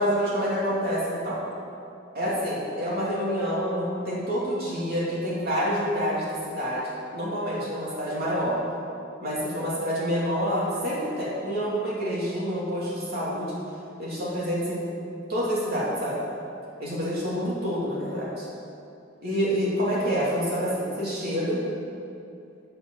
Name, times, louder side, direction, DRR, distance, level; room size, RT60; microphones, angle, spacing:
voice 1, 0.0-1.4 2.1-8.6 9.2-13.6 14.0-14.8 15.3-16.2 16.8-18.5 19.2-21.6, equal, 55° right, -6 dB, 2.7 m, -27 dB
8.8 x 8.0 x 7.8 m, 2.6 s
head